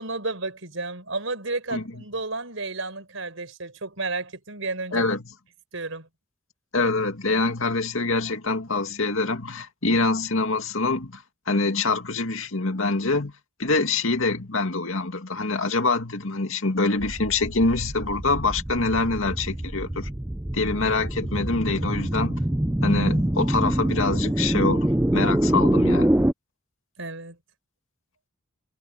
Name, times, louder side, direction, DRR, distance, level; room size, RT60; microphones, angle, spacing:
voice 1, 0.0-5.0 5.7-6.1 27.0-27.4, right 3 dB, 70° right, 4.9 m, -32 dB
voice 2, 4.9-5.2 6.7-13.3 13.6-20.1 20.5-22.4 22.8-26.2, left 3 dB, 70° left, 2.3 m, -25 dB
sound 1, 17.0-26.3, right 1 dB, 10° right, 0.4 m, -25 dB
head